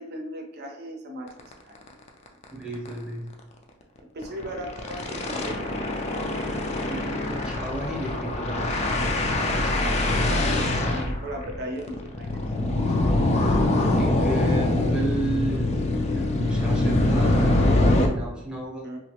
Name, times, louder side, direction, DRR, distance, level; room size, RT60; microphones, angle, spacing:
voice 1, 0.0-1.9 4.1-5.9 10.3-12.3 18.8-19.0, equal, 50° right, 2 dB, 0.6 m, -37 dB
sound 1, 1.4-1.5 1.9-2.0 2.3-2.4 2.7-2.9 4.2-18.1, left 2 dB, 30° left, 0.3 m, -24 dB
voice 2, 2.5-3.3 6.5-9.1 9.5-10.7 12.7-13.4 14.0-15.7 16.1-18.9, right 1 dB, 5° right, -4 dB, 0.7 m, -34 dB
2.9 x 2.5 x 2.8 m, 0.89 s
head